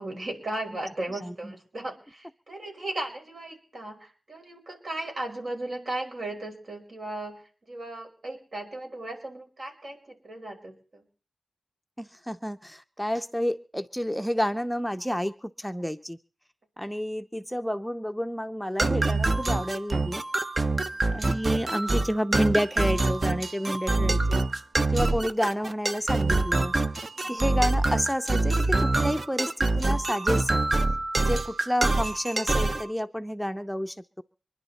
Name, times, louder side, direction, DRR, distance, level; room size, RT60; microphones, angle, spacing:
voice 1, 0.0-7.4 7.7-11.0 20.6-21.0 27.1-27.4, right 1 dB, 60° right, 3 dB, 5.1 m, -36 dB
voice 2, 12.0-16.2 16.8-20.2 21.1-24.5 24.9-26.8 27.3-30.7 31.1-34.2, equal, ahead, 9 dB, 0.7 m, -30 dB
sound 1, 18.8-32.9, right 2 dB, 45° right, 1.0 m, -25 dB
25.0 x 11.0 x 4.2 m, 0.38 s
cardioid pair, 50°, 0 cm